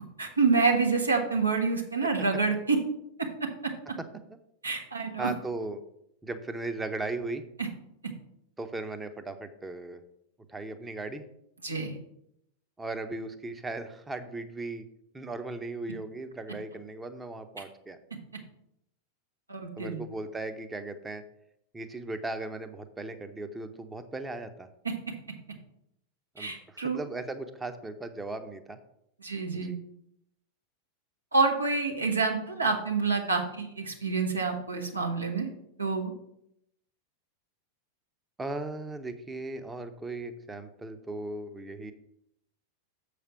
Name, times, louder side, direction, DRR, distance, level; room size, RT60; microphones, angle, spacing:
voice 1, 0.2-2.8 3.4-3.5 4.6-5.3 7.6-7.7 11.6-11.9 19.5-20.0 24.8-25.1 26.4-27.0 29.2-29.7 31.3-35.5 35.8-36.1, right 4 dB, 80° right, 1 dB, 1.5 m, -27 dB
voice 2, 5.2-5.8 6.2-7.4 8.6-10.0 10.5-11.2 12.8-14.8 15.1-18.0 19.8-21.2 21.7-24.7 26.3-28.8 29.5-29.8 38.4-41.9, right 2 dB, 10° right, 8 dB, 0.8 m, -37 dB
7.2 x 5.0 x 6.1 m, 0.76 s
figure-of-eight pair, 90°, 0 cm